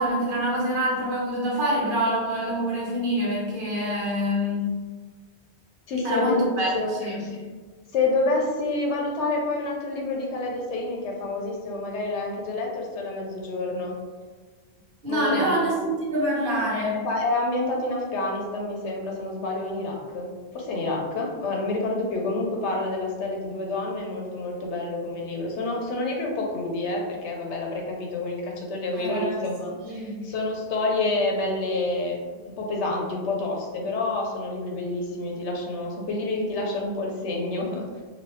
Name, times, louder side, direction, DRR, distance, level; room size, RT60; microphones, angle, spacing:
voice 1, 0.0-4.7 6.0-6.7 7.0-7.2 15.0-17.1 28.9-29.4 29.9-30.2, equal, 55° right, -5 dB, 1.0 m, -26 dB
voice 2, 5.9-6.4 6.7-6.9 7.2-7.4 7.9-13.9 15.1-15.7 17.0-20.3 20.5-32.2 32.4-37.9, left 2 dB, 85° left, 0 dB, 1.0 m, -28 dB
3.1 x 2.7 x 3.1 m, 1.5 s
omnidirectional pair, 1.1 m